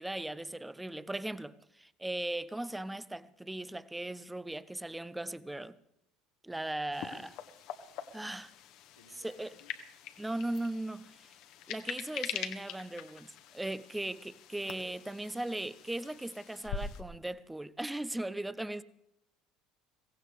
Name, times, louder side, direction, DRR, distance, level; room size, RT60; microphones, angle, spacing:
voice 1, 0.0-5.8 6.4-7.4 8.1-8.5 9.2-9.6 10.2-11.3 11.7-18.8, right 1 dB, 10° right, 0.6 m, -38 dB
sound 1, 6.9-17.1, left 8 dB, 50° left, 1.2 m, -44 dB
voice 2, 9.0-9.7, left 4 dB, 80° left, 1.9 m, -61 dB
22.5 x 17.5 x 3.3 m
figure-of-eight pair, 65°, 0 cm